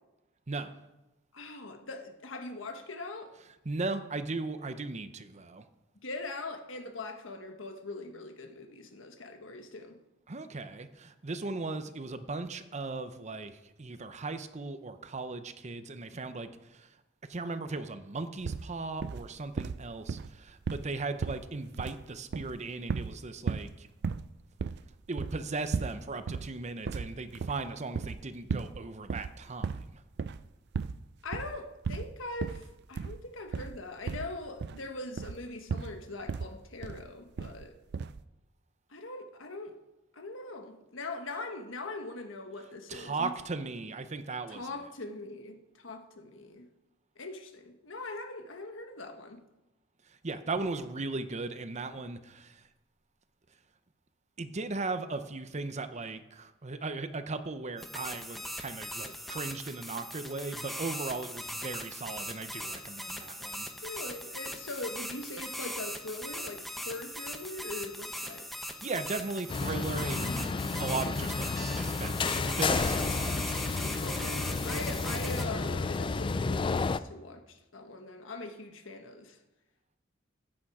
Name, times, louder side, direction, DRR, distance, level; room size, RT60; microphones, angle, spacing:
voice 1, 1.3-3.3 6.0-10.0 31.2-37.7 38.9-39.7 40.1-43.3 44.5-46.7 47.2-49.4 63.8-68.5 74.0-79.4, left 2 dB, 85° left, 6 dB, 1.4 m, -41 dB
voice 2, 3.6-5.6 10.3-17.0 17.3-23.9 25.1-30.0 42.9-44.7 50.1-52.7 54.4-63.7 68.8-70.5 70.8-73.6, right 3 dB, 35° right, 10 dB, 0.7 m, -37 dB
sound 1, 18.5-18.7 19.0-19.3 19.6-20.9 21.2-22.0 22.3-23.2 23.5-23.7 24.0-24.3 24.6-26.0 26.3-26.5 26.9-28.2 28.5-28.8 29.0-29.9 30.2-30.5 30.7-31.0 31.3-31.6 31.8-32.1 32.4-32.7 33.0-33.2 33.5-33.8 34.1-34.8 35.2-35.4 35.7-36.0 36.3-36.5 36.8-37.1 37.4-37.6 37.9-38.2, right 5 dB, 60° right, 0.4 m, -35 dB
sound 2, 57.8-75.4, equal, ahead, 0.9 m, -40 dB
sound 3, 69.5-77.0, left 4 dB, 25° left, 0.3 m, -31 dB
14.5 x 8.7 x 4.9 m, 1.0 s
head